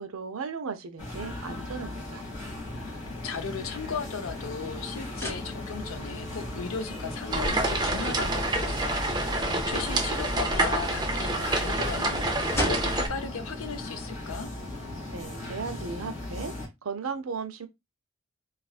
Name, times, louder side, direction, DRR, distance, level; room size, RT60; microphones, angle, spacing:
voice 1, 0.0-2.2 15.1-17.7, right 5 dB, 85° right, 0.5 m, -36 dB
sound 1, 1.0-16.7, left 2 dB, 35° left, 1.7 m, -37 dB
sound 2, 2.4-15.3, equal, 15° left, 1.9 m, -41 dB
voice 2, 2.7-14.5, left 5 dB, 80° left, 0.6 m, -37 dB
sound 3, 7.3-13.1, right 2 dB, 20° right, 0.5 m, -27 dB
4.1 x 2.4 x 2.3 m
head